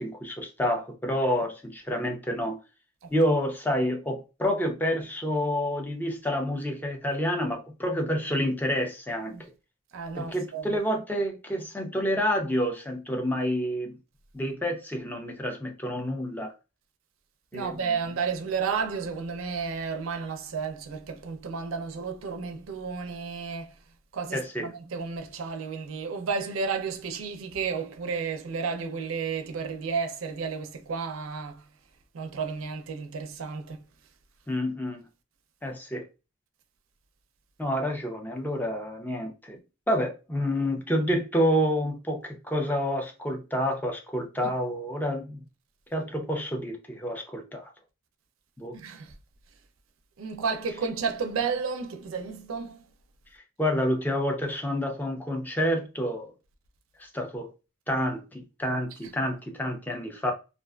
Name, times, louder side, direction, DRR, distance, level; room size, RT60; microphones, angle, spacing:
voice 1, 0.0-2.6 3.1-9.4 10.1-14.0 14.3-16.5 17.5-17.8 24.3-24.7 34.5-35.0 35.6-36.0 37.6-39.6 39.9-45.4 45.9-47.7 48.6-48.7 53.3-56.3 57.0-57.5 57.9-60.3, equal, 10° left, 0.5 m, -28 dB
voice 2, 9.9-10.8 17.5-23.7 24.1-31.6 32.1-33.8 44.4-44.5 48.7-49.1 50.2-52.8, right 5 dB, 75° right, 0.5 m, -32 dB
2.4 x 2.3 x 2.2 m
head